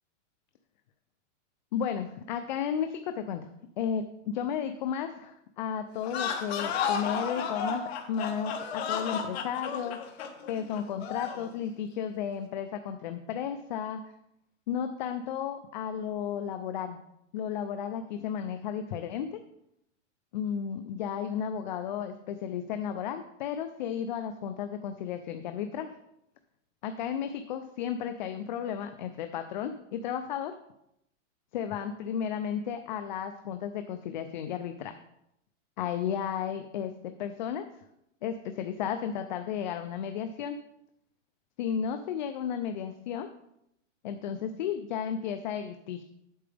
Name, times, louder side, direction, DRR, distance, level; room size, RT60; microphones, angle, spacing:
voice 1, 1.7-3.5 3.8-10.2 10.5-14.0 14.7-17.0 17.3-19.4 20.3-25.9 26.8-30.5 31.5-35.0 35.8-36.9 37.2-37.7 38.2-40.6 41.6-43.3 44.0-46.0, left 8 dB, 40° left, 8 dB, 0.5 m, -33 dB
sound 1, 6.0-11.5, left 6 dB, 55° left, 1.4 m, -33 dB
8.7 x 7.8 x 3.4 m, 0.79 s
supercardioid pair, 160°, 38 cm